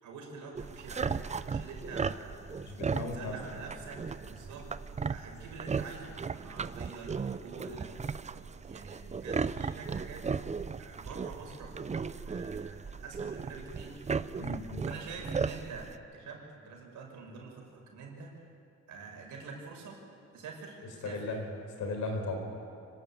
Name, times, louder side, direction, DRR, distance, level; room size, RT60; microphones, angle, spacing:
voice 1, 0.0-2.5 2.9-4.7 5.1-8.0 8.7-10.2 10.8-14.0 14.9-17.6 17.9-18.3 18.9-20.0 20.3-20.8 21.0-21.2, right 4 dB, 75° right, 0 dB, 5.5 m, -46 dB
sound 1, 0.6-16.0, right 5 dB, 25° right, 0.6 m, -36 dB
voice 2, 2.6-3.3 14.4-14.8 21.0-21.5 21.8-22.4, left 3 dB, 70° left, 3 dB, 4.5 m, -36 dB
25.0 x 12.5 x 8.8 m, 2.6 s
cardioid pair, 90°, 30 cm